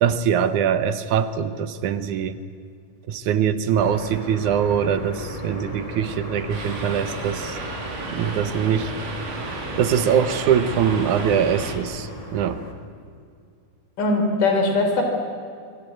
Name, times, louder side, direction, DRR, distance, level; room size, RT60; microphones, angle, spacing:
voice 1, 0.0-2.4 3.1-7.6 8.1-8.9 9.8-12.6, right 8 dB, 70° right, 12 dB, 2.4 m, -22 dB
sound 1, 3.8-12.7, left 1 dB, 10° left, 2.3 m, -36 dB
sound 2, 6.5-11.8, right 3 dB, 90° right, 5.0 m, -33 dB
voice 2, 14.0-15.0, left 2 dB, 75° left, 4 dB, 5.2 m, -20 dB
25.0 x 24.0 x 8.6 m, 2.3 s
omnidirectional pair, 3.8 m